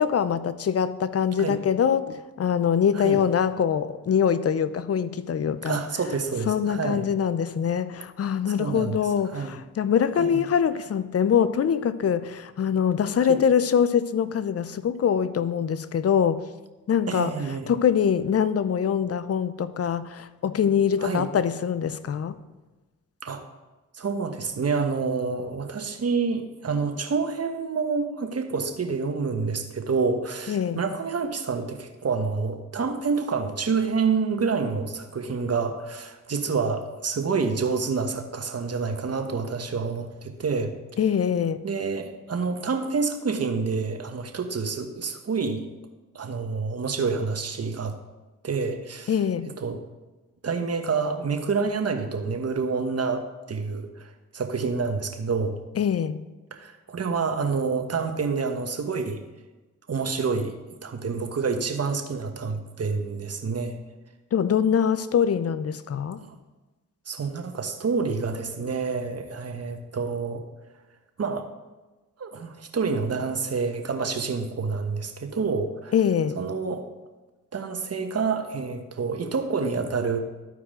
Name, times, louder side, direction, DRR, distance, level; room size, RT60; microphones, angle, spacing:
voice 1, 0.0-5.8 6.5-16.4 16.9-17.3 17.7-22.4 30.5-30.8 41.0-41.6 49.1-49.5 55.8-56.2 64.3-66.2 75.9-76.4, left 8 dB, 40° left, 14 dB, 0.6 m, -24 dB
voice 2, 5.6-7.1 8.5-9.0 9.3-9.6 10.2-10.4 13.2-13.4 17.1-17.7 21.0-21.3 23.2-23.4 23.9-40.7 41.6-45.7 46.1-47.9 48.4-49.1 49.6-49.8 50.4-55.6 56.5-59.2 59.9-60.6 60.8-63.8 66.2-66.3 67.1-70.4 71.2-71.4 72.2-75.9 76.3-76.9 77.5-80.2, right 5 dB, 45° right, 5 dB, 1.3 m, -28 dB
13.5 x 4.7 x 3.8 m, 1.2 s
supercardioid pair, 50°, 36 cm